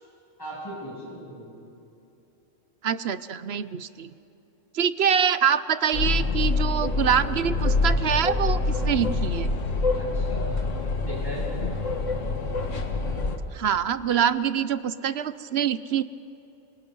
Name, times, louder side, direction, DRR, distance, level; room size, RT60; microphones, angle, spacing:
voice 1, 0.4-1.5 10.0-10.6 11.1-11.4, equal, 15° left, -5 dB, 7.4 m, -38 dB
voice 2, 2.8-4.1 4.7-9.5 13.5-16.0, right 8 dB, 60° right, 14 dB, 0.9 m, -25 dB
sound 1, 5.9-13.4, left 3 dB, 80° left, 1.8 m, -26 dB
28.0 x 25.0 x 5.4 m, 2.8 s
omnidirectional pair, 1.3 m